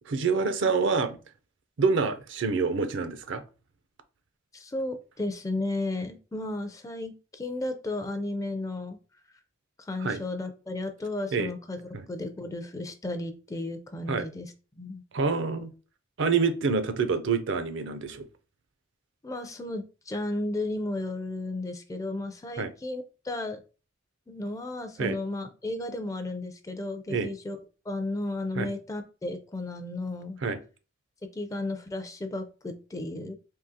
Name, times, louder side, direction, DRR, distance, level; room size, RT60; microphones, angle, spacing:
voice 1, 0.1-1.2 1.8-3.4 10.0-10.2 11.3-11.5 11.9-12.0 14.1-14.2 15.1-15.7 16.2-18.3 22.6-22.7 25.0-25.2 27.1-27.3 28.6-28.7 30.4-30.6, right 5 dB, 65° right, 0.5 m, -26 dB
voice 2, 4.5-9.0 9.8-15.0 19.2-23.6 24.3-27.6 27.9-30.4 31.3-33.4, left 2 dB, 15° left, 0.4 m, -34 dB
3.7 x 2.7 x 2.7 m
head